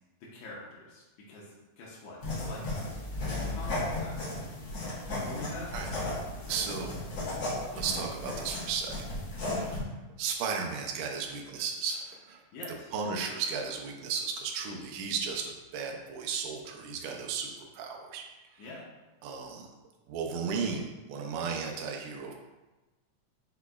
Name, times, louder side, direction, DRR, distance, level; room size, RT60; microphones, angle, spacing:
voice 1, 0.2-1.5 1.8-3.0 3.3-4.2 5.2-6.0 9.5-9.7 12.5-12.9 18.6-18.9, left 2 dB, 75° left, -5 dB, 2.0 m, -44 dB
sound 1, 2.2-9.8, left 2 dB, 55° left, 1.4 m, -35 dB
voice 2, 6.5-6.9 7.7-9.0 9.4-9.8 10.2-12.4 12.9-18.2 18.6-18.7 19.2-19.7 20.1-22.3, right 5 dB, 80° right, 1 dB, 2.1 m, -34 dB
5.5 x 4.0 x 2.3 m, 1.1 s
omnidirectional pair, 3.8 m